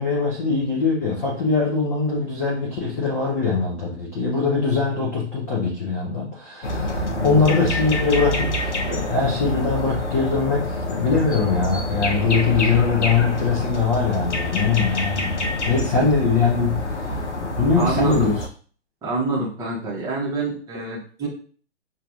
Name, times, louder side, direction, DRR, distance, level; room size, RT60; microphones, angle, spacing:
voice 1, 0.0-16.9 17.6-18.4, left 4 dB, 15° left, -4 dB, 0.4 m, -22 dB
sound 1, 6.6-18.5, left 1 dB, 75° left, 0.8 m, -26 dB
voice 2, 7.1-7.6 17.8-18.3 19.0-21.3, right 3 dB, 10° right, -4 dB, 0.9 m, -27 dB
6.4 x 2.4 x 2.4 m, 0.43 s
figure-of-eight pair, 120°, 35 cm